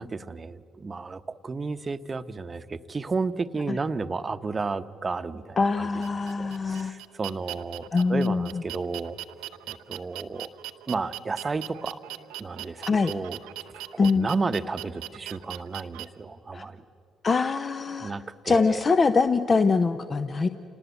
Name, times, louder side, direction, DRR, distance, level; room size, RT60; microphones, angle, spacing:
voice 1, 0.0-5.9 6.4-9.2 9.7-10.5 10.9-12.0 12.4-13.4 13.9-16.8 18.0-18.8, right 4 dB, 35° right, 11 dB, 0.9 m, -32 dB
voice 2, 5.6-6.9 7.9-8.6 12.9-13.1 14.0-14.3 16.5-16.6 17.2-18.1 18.5-20.5, left 4 dB, 40° left, 11 dB, 0.8 m, -23 dB
sound 1, 6.0-16.0, right 15 dB, 90° right, 0.7 m, -40 dB
27.0 x 19.0 x 8.3 m, 2.7 s
supercardioid pair, 65°, 0 cm